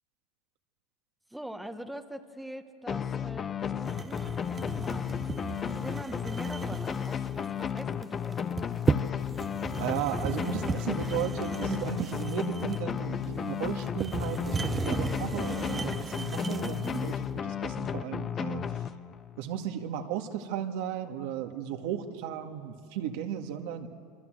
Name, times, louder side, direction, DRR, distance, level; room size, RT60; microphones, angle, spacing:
voice 1, 1.3-5.2 5.7-8.8 16.8-17.2, equal, 5° right, 6 dB, 1.3 m, -43 dB
sound 1, 2.9-19.4, left 8 dB, 30° left, 0.8 m, -34 dB
sound 2, 3.8-17.2, right 5 dB, 20° right, 0.9 m, -35 dB
voice 2, 9.8-17.3 17.6-18.6 19.4-23.9, right 10 dB, 70° right, 4 dB, 2.0 m, -35 dB
27.5 x 25.0 x 7.9 m, 2.5 s
supercardioid pair, 115°, 0 cm